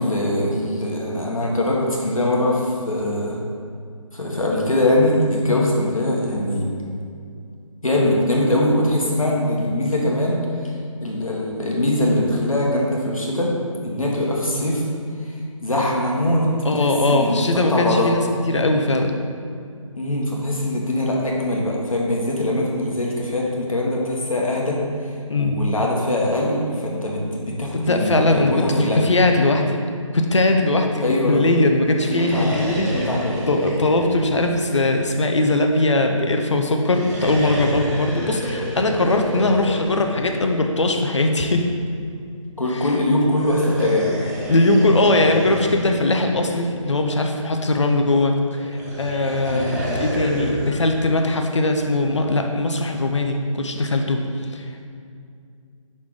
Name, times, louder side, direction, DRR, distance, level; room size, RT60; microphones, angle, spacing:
voice 1, 0.0-3.4 4.1-6.7 7.8-10.7 11.0-13.5 13.8-14.9 15.2-18.1 20.0-29.0 31.0-31.6 32.1-33.5 38.4-38.6 42.6-44.1 49.5-49.7, left 1 dB, 80° left, -2 dB, 1.4 m, -22 dB
voice 2, 16.7-19.2 25.3-25.6 27.8-29.8 30.1-32.9 33.4-41.7 44.5-54.2 54.5-54.9, left 2 dB, 60° left, 4 dB, 0.7 m, -20 dB
sound 1, 31.9-35.4 36.7-41.1 43.3-47.3 48.6-50.8, equal, 30° right, 1.1 m, -30 dB
5.6 x 4.3 x 4.7 m, 2.3 s
figure-of-eight pair, 150°, 17 cm